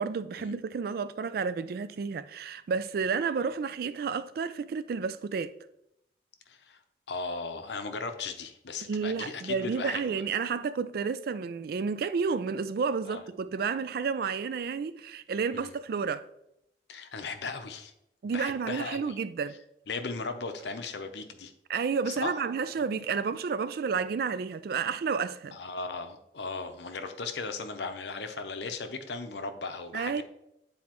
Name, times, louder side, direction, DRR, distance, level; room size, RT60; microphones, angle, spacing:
voice 1, 0.0-5.5 8.8-16.3 18.2-19.6 21.7-25.6 29.9-30.2, right 5 dB, 55° right, 0.3 m, -31 dB
voice 2, 6.5-6.8 7.1-10.2 13.1-13.2 15.5-15.7 16.9-17.9 18.2-19.2 19.9-21.5 22.1-22.3 25.5-30.2, left 4 dB, 75° left, 0.7 m, -37 dB
9.4 x 4.1 x 3.0 m
head